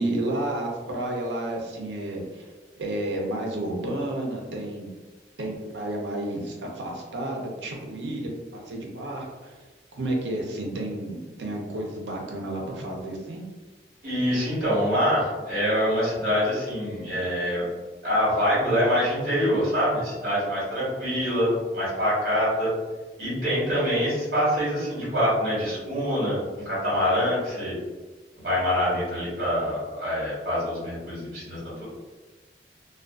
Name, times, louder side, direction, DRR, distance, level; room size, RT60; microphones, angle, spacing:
voice 1, 0.0-2.5 2.8-4.9 5.4-9.6 9.9-13.4, right 1 dB, 90° right, -1 dB, 0.6 m, -31 dB
voice 2, 14.0-17.6 18.0-22.8 23.2-27.7 28.3-31.8, equal, 55° right, -8 dB, 1.3 m, -25 dB
2.4 x 2.3 x 2.3 m, 1.3 s
head